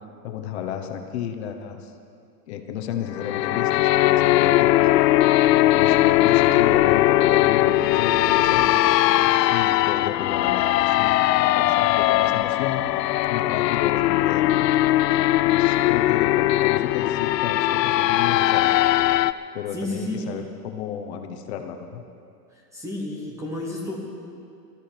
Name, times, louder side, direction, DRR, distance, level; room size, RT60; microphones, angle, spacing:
voice 1, 0.2-1.9 2.5-4.9 5.6-8.7 9.2-14.7 15.1-18.7 19.5-22.0, left 9 dB, 40° left, 5 dB, 1.0 m, -33 dB
sound 1, 3.1-19.3, left 15 dB, 90° left, 0.6 m, -19 dB
sound 2, 5.8-9.3, right 2 dB, 25° right, 0.4 m, -38 dB
voice 2, 19.7-20.3 22.7-24.0, left 1 dB, 5° right, -2 dB, 0.8 m, -31 dB
19.5 x 13.5 x 4.5 m, 2.4 s
supercardioid pair, 175°, 48 cm